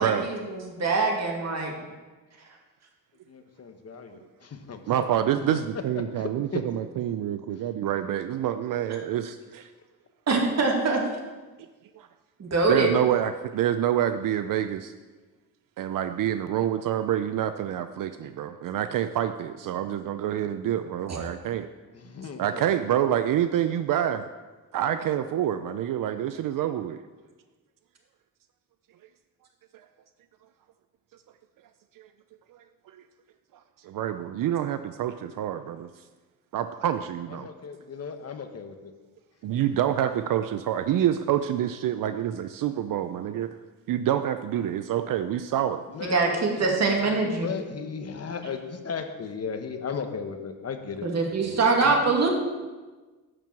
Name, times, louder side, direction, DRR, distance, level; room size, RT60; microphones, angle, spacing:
voice 1, 0.0-1.7 8.9-9.0 10.3-11.0 12.4-12.9 46.1-47.5 51.0-52.3, right 3 dB, 50° right, 0 dB, 2.2 m, -24 dB
voice 2, 3.3-4.8 5.5-5.6 6.1-6.6 21.9-22.8 37.3-38.9 45.9-51.0 51.8-51.9, left 6 dB, 45° left, 7 dB, 1.0 m, -36 dB
voice 3, 4.9-9.7 12.0-12.1 12.7-14.9 15.8-21.7 22.4-24.2 24.7-27.0 32.0-32.1 33.8-35.9 36.5-37.5 39.4-43.6 43.9-45.8 51.5-51.6, right 10 dB, 65° right, 10 dB, 0.5 m, -27 dB
11.0 x 4.6 x 7.4 m, 1.3 s
cardioid pair, 100°, 35 cm